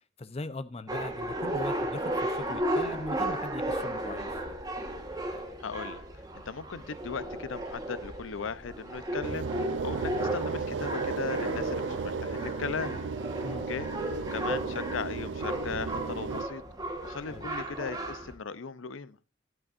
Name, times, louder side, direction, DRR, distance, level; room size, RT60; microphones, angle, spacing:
voice 1, 0.2-4.3 13.4-13.7 17.3-17.5, left 2 dB, 30° left, 0.6 m, -39 dB
sound 1, 0.9-18.3, right 1 dB, 20° right, 1.2 m, -35 dB
voice 2, 5.6-6.0 6.5-12.9 13.7-13.9 14.3-16.6 17.0-19.2, left 5 dB, 85° left, 0.6 m, -37 dB
sound 2, 9.2-16.4, right 4 dB, 70° right, 0.4 m, -34 dB
12.0 x 8.6 x 2.5 m
head